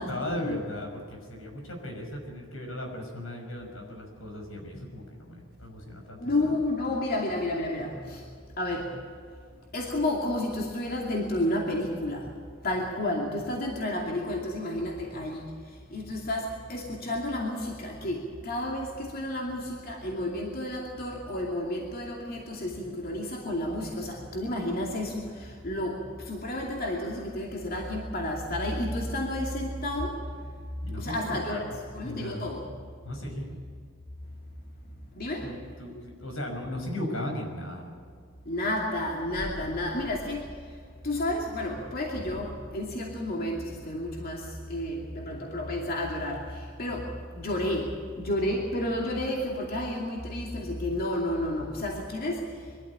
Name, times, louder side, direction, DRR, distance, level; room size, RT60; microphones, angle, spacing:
voice 1, 0.0-6.2 6.5-6.6 30.8-31.8 32.0-32.5 33.0-33.5 35.4-37.9, left 1 dB, 85° left, 2 dB, 5.8 m, -37 dB
voice 2, 6.2-8.2 8.6-8.9 9.7-12.3 12.6-15.5 15.9-30.2 31.0-32.7 35.2-35.5 38.5-40.5 41.0-52.5, left 1 dB, 45° left, -1 dB, 2.6 m, -31 dB
23.0 x 13.5 x 8.8 m, 2.1 s
head